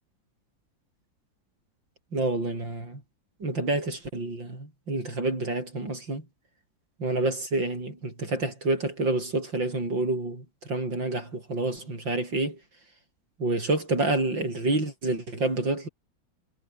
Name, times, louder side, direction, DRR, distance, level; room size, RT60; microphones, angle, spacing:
voice 1, 2.1-3.0 3.4-6.3 7.0-12.6 13.4-15.9, right 2 dB, 65° right, 8.6 m, -28 dB
omnidirectional pair, 2.1 m